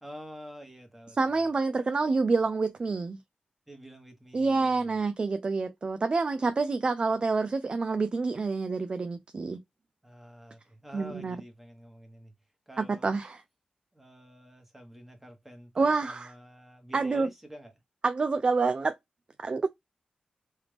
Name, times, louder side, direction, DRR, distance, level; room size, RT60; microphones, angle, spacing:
voice 1, 0.0-1.5 3.7-4.9 10.0-12.3 12.7-13.2 13.9-17.7, equal, 10° right, 1.1 m, -48 dB
voice 2, 1.2-3.2 4.3-9.6 10.9-11.4 12.8-13.4 15.8-16.3 16.9-17.3 18.0-18.9 19.4-19.7, right 4 dB, 40° right, 0.3 m, -27 dB
3.3 x 2.4 x 3.3 m
wide cardioid pair, 95°, 3 cm